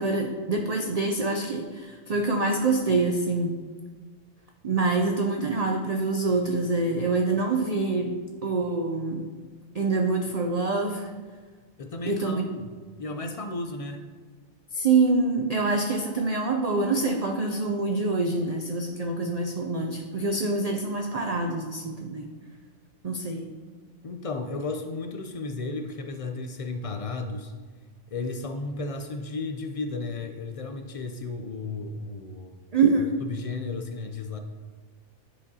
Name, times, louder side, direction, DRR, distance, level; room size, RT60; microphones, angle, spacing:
voice 1, 0.0-3.6 4.6-8.2 8.4-9.3 9.7-11.1 12.0-12.4 14.7-22.3 23.0-23.5 32.7-33.2, right 3 dB, 55° right, 3 dB, 0.4 m, -25 dB
voice 2, 11.8-12.7 13.0-14.0 24.0-27.5 28.1-32.6 33.0-34.4, left 3 dB, 65° left, 5 dB, 0.3 m, -34 dB
10.5 x 4.9 x 2.8 m, 1.5 s
omnidirectional pair, 1.3 m